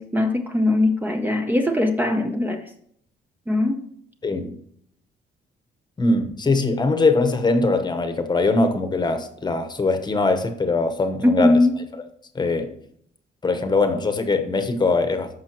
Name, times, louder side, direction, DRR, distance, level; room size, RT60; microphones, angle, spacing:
voice 1, 0.0-2.6 3.5-3.8 11.2-11.8, left 2 dB, 10° right, 4 dB, 0.7 m, -20 dB
voice 2, 4.2-4.5 6.0-11.6 12.3-12.7 13.4-15.4, left 3 dB, 25° left, 8 dB, 1.0 m, -21 dB
14.0 x 5.6 x 3.0 m, 0.67 s
cardioid pair, 130°, 18 cm